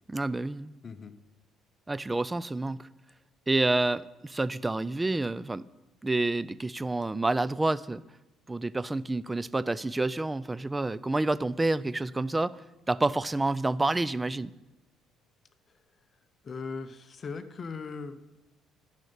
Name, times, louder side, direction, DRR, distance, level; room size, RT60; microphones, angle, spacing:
voice 1, 0.1-0.7 1.9-2.9 3.5-5.7 6.0-8.0 8.5-12.6 12.9-14.5, right 2 dB, 15° right, 19 dB, 0.4 m, -28 dB
voice 2, 0.8-1.1 16.4-18.2, left 4 dB, 35° left, 11 dB, 0.8 m, -38 dB
11.5 x 6.5 x 9.3 m, 1.0 s
cardioid pair, 100°, 0 cm